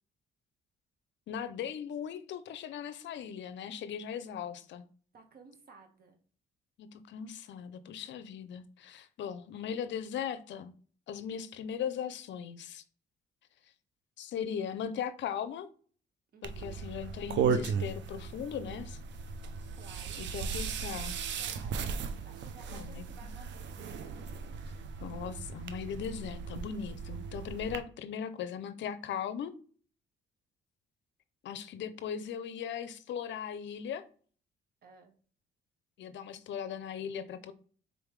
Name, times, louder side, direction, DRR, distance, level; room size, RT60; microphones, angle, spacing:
voice 1, 1.3-4.9 6.8-10.7 11.1-12.8 14.2-15.7 16.4-19.0 20.2-21.1 22.7-23.0 25.0-29.5 31.4-34.0 36.0-37.5, left 8 dB, 65° left, 0.5 m, -38 dB
voice 2, 5.1-6.2 16.3-16.9 19.7-21.9 22.2-23.7 34.8-35.1, right 4 dB, 50° right, 1.2 m, -56 dB
sound 1, 16.4-27.8, right 6 dB, 65° right, 0.5 m, -36 dB
4.0 x 3.5 x 3.1 m
cardioid pair, 90°, 20 cm